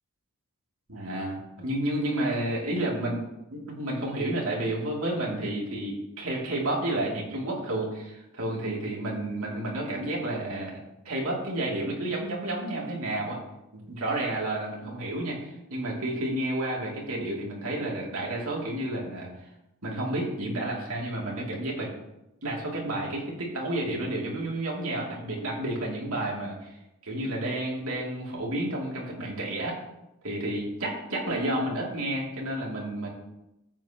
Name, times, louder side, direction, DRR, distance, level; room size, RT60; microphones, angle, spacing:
voice 1, 0.9-10.8 11.0-13.4 13.7-19.3 19.8-21.9 22.4-26.7 27.0-29.8 30.2-33.1, right 1 dB, 70° right, -3 dB, 2.8 m, -31 dB
13.5 x 8.1 x 3.0 m, 0.91 s
head